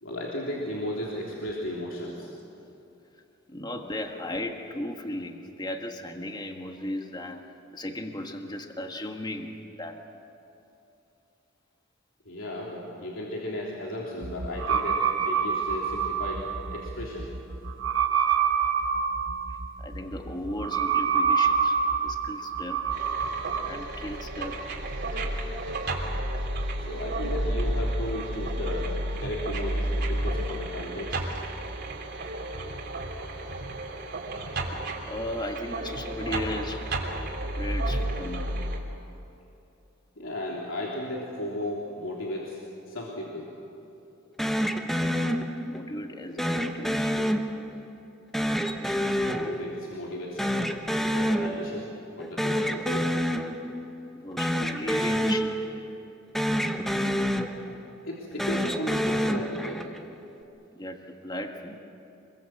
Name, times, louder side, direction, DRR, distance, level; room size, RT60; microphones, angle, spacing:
voice 1, 0.0-2.3 12.3-16.4 16.7-17.3 26.8-28.9 29.2-31.2 40.2-42.6 42.9-43.5 47.2-47.3 49.3-50.5 51.1-53.2 55.1-55.3 57.7-57.8 58.1-59.9, left 1 dB, 75° left, -4 dB, 3.3 m, -35 dB
voice 2, 3.5-10.0 19.5-22.9 23.6-24.6 35.1-36.9 37.4-38.6 45.7-47.2 54.1-55.5 60.7-61.8, left 1 dB, 20° left, 4 dB, 1.6 m, -36 dB
sound 1, 14.2-23.7, right 6 dB, 75° right, 2.0 m, -27 dB
sound 2, 22.9-38.8, right 1 dB, 55° right, 3.4 m, -31 dB
sound 3, 44.4-45.9 46.4-47.9 48.3-50.1 50.4-51.9 52.2-53.9 54.3-56.1 56.3-57.9 58.3-60.1, equal, ahead, 1.1 m, -28 dB
26.5 x 22.5 x 7.8 m, 2.8 s
head